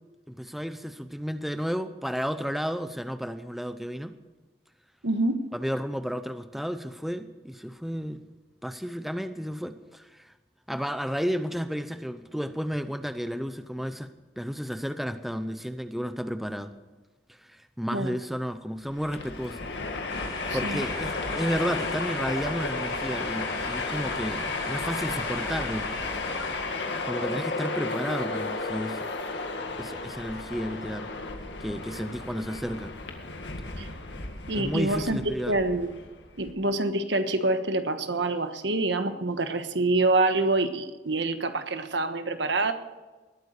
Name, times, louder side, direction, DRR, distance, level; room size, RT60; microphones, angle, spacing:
voice 1, 0.3-4.1 5.5-8.2 8.6-10.3 10.7-14.1 14.4-16.7 17.4-19.7 20.2-25.9 27.1-29.1 29.8-31.1 31.6-32.9 34.6-35.6, equal, ahead, 10 dB, 0.6 m, -32 dB
voice 2, 5.0-5.4 17.9-18.2 20.5-20.8 33.8-33.9 34.5-35.2 35.5-35.9 36.4-42.7, right 2 dB, 75° right, 9 dB, 1.3 m, -26 dB
Train, 18.9-36.5, left 3 dB, 70° left, 1.9 m, -33 dB
sound 1, 20.1-26.6, left 2 dB, 25° left, 4.8 m, -39 dB
20.0 x 9.1 x 6.7 m, 1.2 s
head